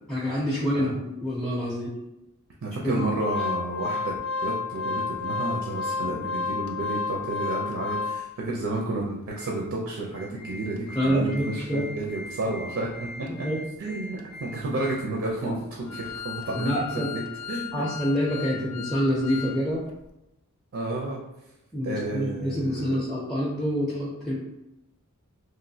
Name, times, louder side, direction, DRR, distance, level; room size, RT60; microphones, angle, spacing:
voice 1, 0.1-1.9 2.9-3.0 10.3-10.4 11.0-11.9 13.4-13.6 16.6-17.1 17.7-19.8 21.7-24.4, equal, ahead, -6 dB, 0.4 m, -27 dB
voice 2, 2.6-12.9 13.2-13.3 13.8-17.2 17.5-17.8 18.5-18.7 20.7-21.2 21.8-23.0, right 2 dB, 60° right, -2 dB, 0.5 m, -31 dB
Organ, 2.9-8.5 9.0-9.1 9.4-9.5 10.0-19.6 19.9-20.0, left 5 dB, 70° left, 0.4 m, -34 dB
3.0 x 2.5 x 2.7 m, 0.90 s
head